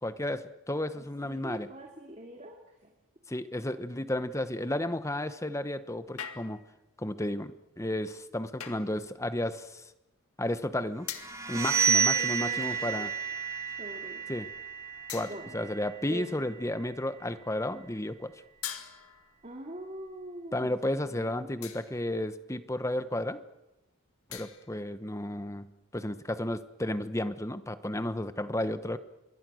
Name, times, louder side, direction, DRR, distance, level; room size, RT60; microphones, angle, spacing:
voice 1, 0.0-1.7 3.3-6.6 7.0-9.9 10.4-11.1 11.5-13.1 14.3-14.5 15.1-18.3 20.5-23.4 24.3-25.7 25.9-29.0, left 1 dB, 15° left, 12 dB, 1.0 m, -33 dB
voice 2, 1.0-2.9 11.5-13.1 13.8-14.2 15.3-15.7 16.1-16.4 19.4-20.7 21.0-21.5, right 1 dB, 30° right, 1 dB, 2.4 m, -44 dB
sound 1, 6.2-6.8 8.6-9.0 11.1-11.5 12.6-13.0 13.7-13.8 15.1-15.7 18.6-19.4 21.6-22.1 24.3-24.8, left 9 dB, 80° left, 2.0 m, -42 dB
sound 2, 11.2-16.8, right 6 dB, 15° right, 2.9 m, -31 dB
27.0 x 22.5 x 6.3 m, 0.94 s
head